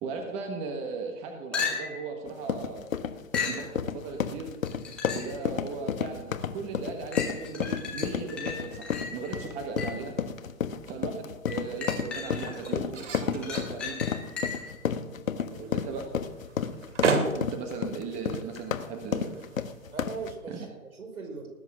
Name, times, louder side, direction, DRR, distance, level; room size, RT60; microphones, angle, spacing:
voice 1, 0.0-2.9 3.4-4.5 5.1-10.1 10.9-14.1 15.6-16.0 17.3-19.4 20.5-20.6, right 4 dB, 15° right, 4 dB, 1.2 m, -37 dB
sound 1, 1.5-2.1 3.3-3.7 4.7-5.4 6.0-6.1 7.1-10.1 11.5-12.7 13.1-14.8 18.6-18.7, left 5 dB, ahead, 0.5 m, -35 dB
sound 2, 2.3-20.3, left 7 dB, 65° left, 1.4 m, -32 dB
sound 3, 10.1-20.5, right 4 dB, 55° right, 3.1 m, -36 dB
voice 2, 19.9-21.5, right 4 dB, 80° right, 4 dB, 5.1 m, -40 dB
19.0 x 9.3 x 6.0 m, 1.1 s
hypercardioid pair, 150°, 43 cm